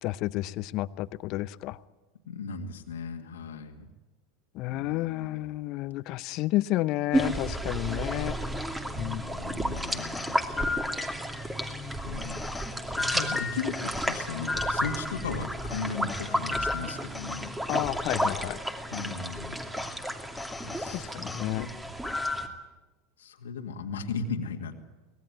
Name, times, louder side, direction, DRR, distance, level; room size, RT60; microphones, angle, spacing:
voice 1, 0.0-1.8 4.5-8.3 9.0-9.2 17.7-18.6 20.9-21.7, left 17 dB, 50° left, 18 dB, 0.7 m, -31 dB
voice 2, 2.3-3.9 4.7-5.4 9.1-10.4 12.1-12.4 13.0-17.5 18.9-19.6 20.6-21.8 23.2-24.8, left 5 dB, 75° left, 4 dB, 2.2 m, -37 dB
sound 1, 7.1-22.5, right 1 dB, 10° right, 2.7 m, -32 dB
sound 2, 9.8-11.5 12.2-15.4 15.7-18.3 18.9-19.1 19.8-20.0 20.4-21.5 22.0-22.6, left 3 dB, 10° left, 1.7 m, -35 dB
24.5 x 19.0 x 9.4 m, 1.2 s
hypercardioid pair, 80°, 0 cm